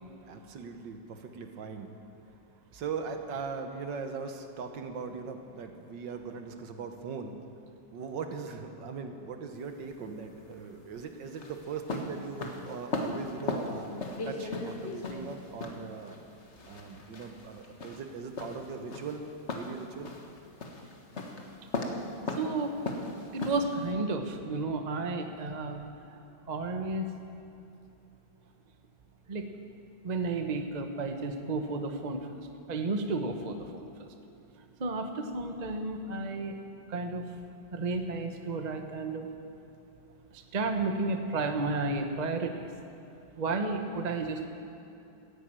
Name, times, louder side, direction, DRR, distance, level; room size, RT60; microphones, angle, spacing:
voice 1, 0.2-1.9 2.7-7.4 7.9-16.2 16.7-19.3 19.5-20.1, right 5 dB, 65° right, 6 dB, 1.7 m, -40 dB
sound 1, 9.5-23.9, left 2 dB, 40° left, 1.5 m, -38 dB
voice 2, 22.4-22.7 23.3-25.8 26.5-27.1 29.3-29.5 30.0-32.4 32.7-34.1 34.8-36.6 36.9-37.3 37.7-39.3 40.3-42.7 43.4-44.5, right 3 dB, 35° right, 5 dB, 0.7 m, -32 dB
14.0 x 10.5 x 8.9 m, 2.8 s
omnidirectional pair, 2.2 m